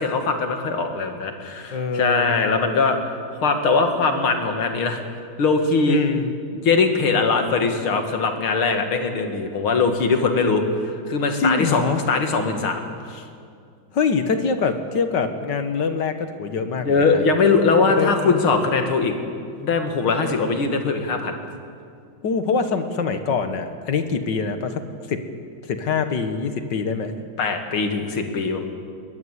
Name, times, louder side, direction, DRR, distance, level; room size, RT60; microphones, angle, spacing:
voice 1, 0.0-3.0 3.3-5.0 5.4-6.0 6.6-13.2 16.8-19.1 19.6-21.4 27.4-28.6, left 4 dB, 80° left, 5 dB, 2.8 m, -21 dB
voice 2, 1.7-2.3 5.9-6.3 11.4-12.0 13.9-17.2 17.8-18.4 22.2-25.2 25.7-27.1, left 5 dB, 60° left, 8 dB, 1.9 m, -24 dB
21.0 x 20.0 x 8.2 m, 2.3 s
omnidirectional pair, 2.3 m